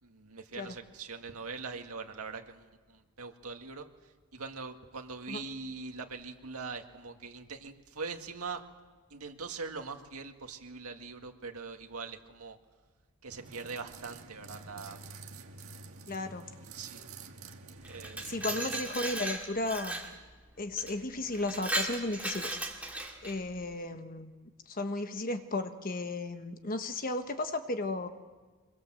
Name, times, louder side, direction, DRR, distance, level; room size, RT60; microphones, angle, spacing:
voice 1, 0.0-8.6 9.1-12.6 13.2-15.0 16.7-17.0 17.8-18.4, right 4 dB, 90° right, 4 dB, 2.0 m, -42 dB
sound 1, 13.3-18.8, right 4 dB, 75° right, 1.6 m, -48 dB
voice 2, 16.1-16.5 18.3-20.1 20.6-22.6 23.2-28.1, left 2 dB, 40° left, 8 dB, 1.3 m, -35 dB
Glass, 17.8-20.1 20.8-20.9 21.3-23.4, right 1 dB, 5° right, 2.1 m, -36 dB
24.0 x 22.0 x 7.7 m, 1.4 s
head